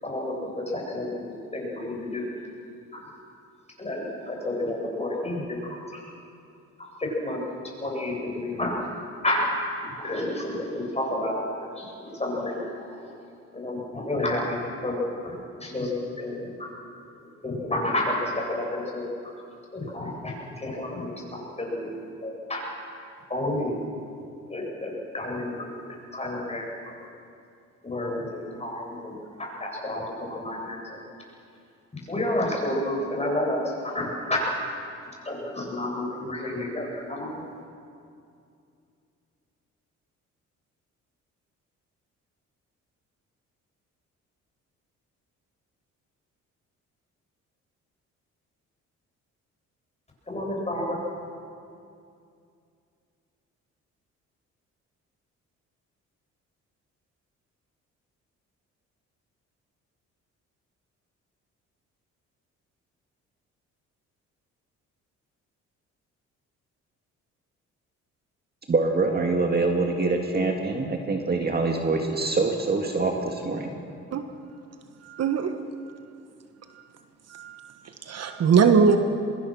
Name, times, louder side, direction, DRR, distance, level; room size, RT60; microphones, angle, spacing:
voice 1, 0.0-2.3 2.9-3.0 3.8-6.0 6.8-7.4 7.8-8.8 9.2-9.6 9.9-11.5 11.8-13.1 13.5-16.7 17.4-19.1 19.7-22.6 23.3-23.9 24.5-25.9 26.1-26.7 27.8-30.8 31.9-34.4 35.2-37.4 50.3-51.0, left 1 dB, 20° left, -2 dB, 7.9 m, -30 dB
voice 2, 68.7-73.7, right 3 dB, 30° right, 2 dB, 2.1 m, -25 dB
voice 3, 75.0-75.5 76.7-76.8 77.3-79.0, right 6 dB, 55° right, 7 dB, 1.4 m, -22 dB
24.5 x 21.5 x 6.3 m, 2.5 s
cardioid pair, 90°, 30 cm